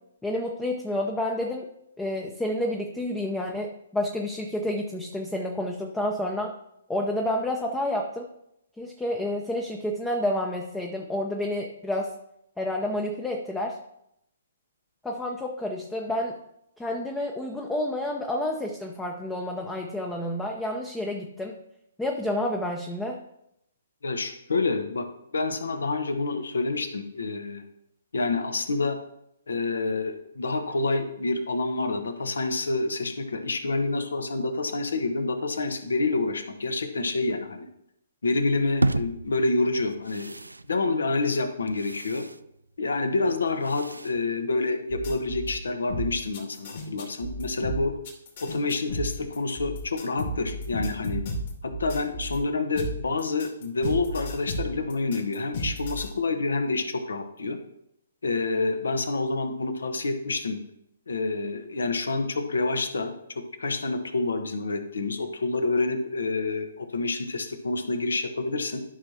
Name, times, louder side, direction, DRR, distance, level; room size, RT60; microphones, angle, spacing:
voice 1, 0.2-1.7 2.0-6.5 6.9-8.3 8.8-12.1 12.6-13.8 15.0-16.4 16.8-21.5 22.0-23.2, left 1 dB, 5° left, 1 dB, 0.7 m, -29 dB
voice 2, 24.0-25.1 25.3-27.6 28.1-29.0 29.5-37.7 38.2-40.3 40.7-42.3 42.8-47.9 48.4-51.2 51.6-57.6 58.2-60.6 61.1-68.8, left 3 dB, 65° left, 7 dB, 1.0 m, -28 dB
sound 1, 38.8-45.0, right 2 dB, 85° right, 0.3 m, -34 dB
sound 2, 44.9-45.5 45.9-52.4 52.7-56.1, equal, 50° left, 2.4 m, -33 dB
12.5 x 5.9 x 2.8 m, 0.79 s
figure-of-eight pair, 125°, 0 cm